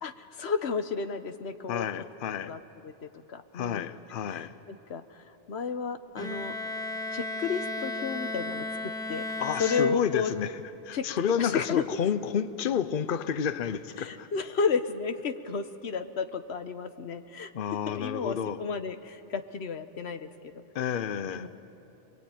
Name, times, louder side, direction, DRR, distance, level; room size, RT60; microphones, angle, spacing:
voice 1, 0.0-1.9 2.5-2.9 3.3-3.9 4.3-6.5 7.1-8.7 9.1-9.2 9.6-10.3 10.9-11.1 11.4-11.8 14.0-20.6 21.3-21.5, left 5 dB, 90° left, 1.3 m, -32 dB
voice 2, 1.7-2.5 3.5-4.5 9.4-10.5 10.8-14.3 17.5-18.6 20.7-21.5, left 8 dB, 60° left, 0.9 m, -30 dB
Bowed string instrument, 6.2-10.6, left 2 dB, 5° left, 1.4 m, -35 dB
28.5 x 21.0 x 9.1 m
omnidirectional pair, 1.1 m